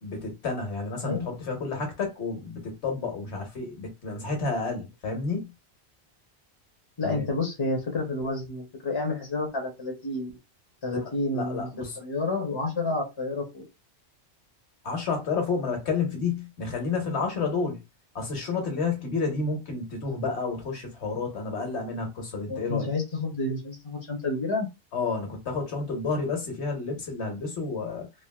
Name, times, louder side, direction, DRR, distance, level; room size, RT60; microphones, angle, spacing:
voice 1, 0.0-5.5 7.0-7.3 11.3-12.0 14.8-17.8 18.1-22.9 24.9-28.1, left 4 dB, 80° left, 1.3 m, -30 dB
voice 2, 7.0-10.3 10.8-11.7 12.0-13.7 22.5-24.7, left 2 dB, 30° left, 0.6 m, -29 dB
3.3 x 2.4 x 2.3 m
omnidirectional pair, 1.1 m